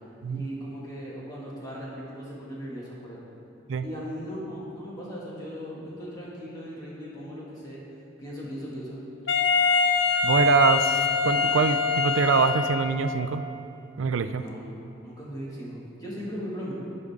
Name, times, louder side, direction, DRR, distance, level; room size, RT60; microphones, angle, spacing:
voice 1, 0.3-3.2 3.8-7.8 8.2-9.0 14.4-14.7 15.0-16.7, equal, 20° left, -7 dB, 2.1 m, -38 dB
Wind instrument woodwind instrument, 9.3-13.2, left 5 dB, 60° left, 0.6 m, -24 dB
voice 2, 10.2-13.4 14.0-14.4, right 5 dB, 85° right, 10 dB, 0.4 m, -24 dB
15.0 x 5.2 x 3.6 m, 2.7 s
head